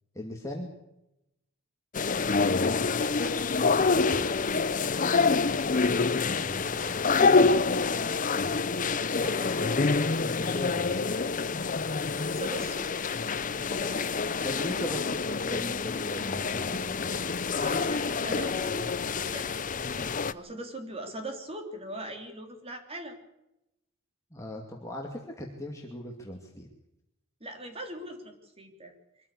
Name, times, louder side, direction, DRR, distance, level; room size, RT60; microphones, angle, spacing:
voice 1, 0.1-0.7 3.7-4.2 5.4-5.7 6.2-7.6 10.4-11.2 14.4-17.1 24.3-26.7, left 1 dB, 15° left, 0 dB, 2.5 m, -38 dB
sound 1, 1.9-20.3, left 4 dB, 40° left, 0.7 m, -27 dB
voice 2, 2.9-3.4 5.2-5.4 9.2-9.8 12.3-13.1 13.8-14.1 14.4-14.7 17.6-18.9 19.2-19.6 19.9-23.2 27.4-28.9, right 1 dB, 30° right, 5 dB, 3.4 m, -41 dB
24.5 x 14.5 x 8.5 m, 0.89 s
head